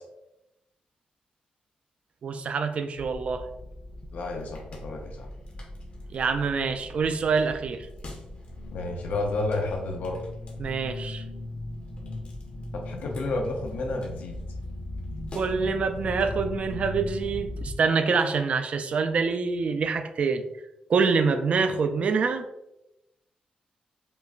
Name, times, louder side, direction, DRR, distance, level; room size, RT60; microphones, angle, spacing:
voice 1, 2.2-3.5 6.1-7.9 10.6-11.2 15.3-20.4 20.9-22.4, right 5 dB, 50° right, 8 dB, 0.3 m, -26 dB
sound 1, 3.0-17.8, left 2 dB, 50° left, 0.8 m, -38 dB
voice 2, 4.1-5.3 8.7-10.2 12.8-14.4, left 2 dB, 80° left, 1 dB, 0.5 m, -31 dB
5.1 x 2.2 x 2.4 m, 0.90 s
wide cardioid pair, 125°, 3 cm